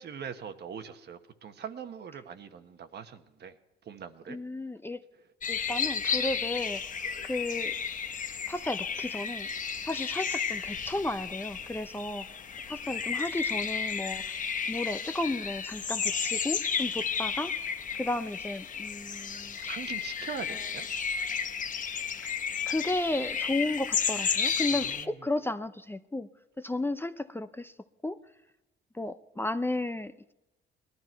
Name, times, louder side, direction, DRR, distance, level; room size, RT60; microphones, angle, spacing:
voice 1, 0.0-3.5 3.8-4.4 19.7-20.9 24.7-25.1, right 7 dB, 55° right, 8 dB, 1.2 m, -42 dB
voice 2, 4.3-5.0 5.5-7.0 7.2-7.7 8.5-9.5 9.8-12.3 12.7-14.4 14.7-17.5 17.9-19.6 20.5-20.7 22.2-22.3 22.7-26.3 26.6-27.7 28.0-28.2 28.9-30.3, left 2 dB, 10° left, 10 dB, 0.5 m, -33 dB
sound 1, 5.4-25.1, left 6 dB, 40° left, 0.9 m, -33 dB
19.5 x 12.5 x 4.6 m, 0.95 s
cardioid pair, 90°, 20 cm